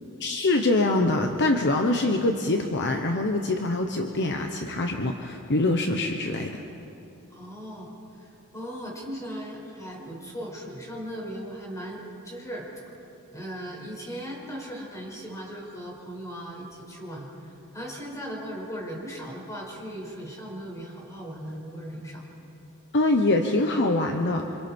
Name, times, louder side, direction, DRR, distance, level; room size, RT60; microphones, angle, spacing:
voice 1, 0.2-6.6 22.9-24.5, left 2 dB, 55° left, 4 dB, 1.1 m, -24 dB
voice 2, 7.3-12.7 13.3-22.2, equal, 15° left, -2 dB, 5.4 m, -38 dB
28.5 x 26.0 x 4.6 m, 2.8 s
head